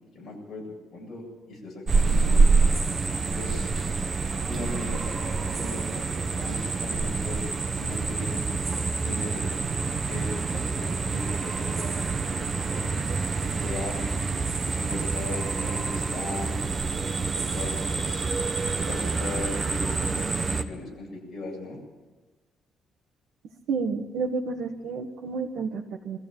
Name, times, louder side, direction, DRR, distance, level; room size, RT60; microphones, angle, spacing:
voice 1, 0.1-0.6 0.9-2.5 3.3-3.7 4.5-7.5 7.8-8.4 9.0-9.7 10.0-13.0 13.3-14.1 14.7-16.6 17.3-18.3 18.9-21.8, left 2 dB, 30° left, -2 dB, 7.7 m, -38 dB
sound 1, 1.9-20.6, right 4 dB, 25° right, 1.0 m, -27 dB
voice 2, 23.7-26.2, right 4 dB, 75° right, 0 dB, 1.6 m, -30 dB
22.5 x 14.5 x 9.2 m, 1.2 s
cardioid pair, 180°, 0 cm